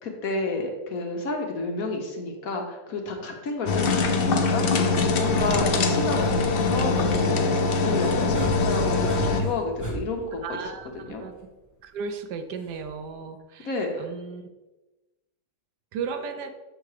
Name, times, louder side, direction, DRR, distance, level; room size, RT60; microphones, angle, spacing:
voice 1, 0.0-4.7 5.2-6.4 6.7-7.5 7.8-10.6 10.9-11.2 13.6-14.1, left 3 dB, 60° left, 2 dB, 1.3 m, -30 dB
sound 1, 3.7-9.4, left 3 dB, 80° left, 0.5 m, -23 dB
sound 2, 5.2-11.3 12.7-13.1, right 2 dB, 10° left, 1.4 m, -37 dB
voice 2, 10.4-11.3 11.8-13.7 14.0-14.4 15.9-16.5, right 5 dB, 75° right, 8 dB, 1.2 m, -35 dB
6.7 x 3.8 x 4.8 m, 1.1 s
omnidirectional pair, 1.8 m